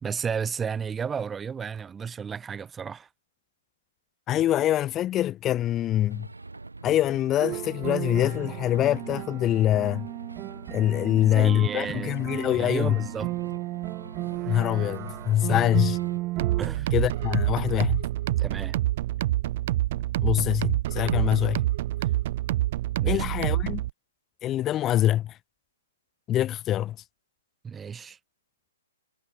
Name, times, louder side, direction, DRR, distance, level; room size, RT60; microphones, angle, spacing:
voice 1, 0.0-3.1 11.1-12.2 12.6-13.3 15.5-15.6 16.6-16.9 18.3-18.8 23.0-23.2 27.6-28.2, right 6 dB, 15° right, 1.1 m, -33 dB
voice 2, 4.3-6.3 6.8-10.1 10.7-13.0 14.5-16.0 16.9-18.1 20.2-21.6 23.1-23.8 24.4-25.4 26.3-27.0, left 12 dB, 20° left, 0.6 m, -24 dB
sound 1, 6.1-16.2, right 3 dB, 90° right, 4.3 m, -44 dB
sound 2, 7.4-16.7, right 19 dB, 30° right, 2.1 m, -34 dB
sound 3, 16.4-23.9, right 15 dB, 45° right, 0.6 m, -27 dB
figure-of-eight pair, 125°, 0 cm